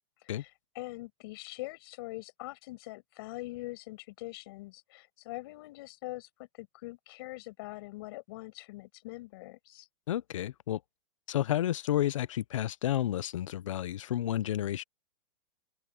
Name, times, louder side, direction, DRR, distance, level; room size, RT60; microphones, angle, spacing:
voice 1, 0.2-9.9, left 21 dB, 50° left, 6.3 m, -43 dB
voice 2, 10.1-10.8 11.3-14.8, left 12 dB, 85° left, 0.7 m, -31 dB
open air
supercardioid pair, 155°, 16 cm